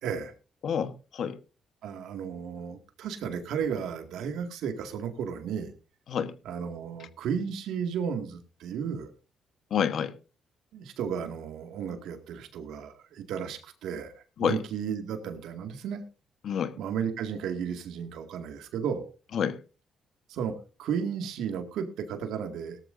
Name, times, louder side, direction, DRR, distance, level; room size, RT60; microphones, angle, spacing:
voice 1, 0.0-0.3 1.8-5.7 6.4-9.1 10.7-16.0 16.8-19.1 20.3-22.8, right 7 dB, 85° right, 2.0 m, -34 dB
voice 2, 0.6-1.4 6.1-6.3 9.7-10.1 14.4-14.6 16.4-16.7 19.3-19.6, left 8 dB, 65° left, 1.2 m, -28 dB
17.5 x 13.5 x 2.6 m
cardioid pair, 90°, 0 cm